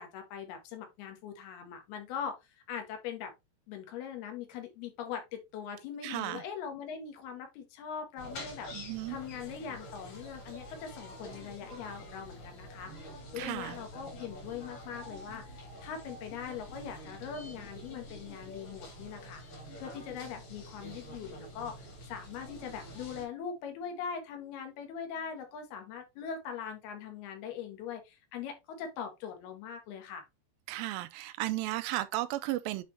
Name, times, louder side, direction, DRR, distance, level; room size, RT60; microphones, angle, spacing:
voice 1, 0.0-3.3 3.7-12.9 13.3-19.4 19.8-30.3, left 7 dB, 70° left, 3.4 m, -41 dB
voice 2, 6.0-6.4 8.7-9.2 13.4-13.8 30.7-32.8, right 16 dB, 80° right, 2.1 m, -34 dB
sound 1, 8.2-23.3, equal, 55° left, 4.8 m, -47 dB
9.2 x 4.2 x 3.2 m
omnidirectional pair, 4.8 m